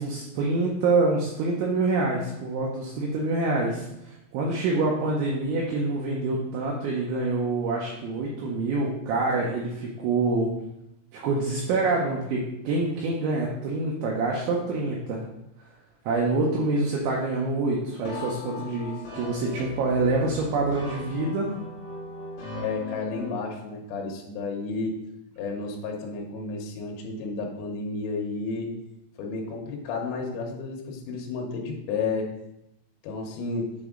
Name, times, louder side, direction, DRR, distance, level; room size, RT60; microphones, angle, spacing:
voice 1, 0.0-10.5 11.1-15.2 16.1-21.5, right 3 dB, 80° right, -2 dB, 2.8 m, -26 dB
sound 1, 18.0-23.4, left 1 dB, 50° left, 3.2 m, -38 dB
voice 2, 22.5-24.9 25.4-28.7 29.2-32.3 33.0-33.7, left 4 dB, 80° left, 0 dB, 3.2 m, -32 dB
8.1 x 3.4 x 3.7 m, 0.86 s
omnidirectional pair, 6.0 m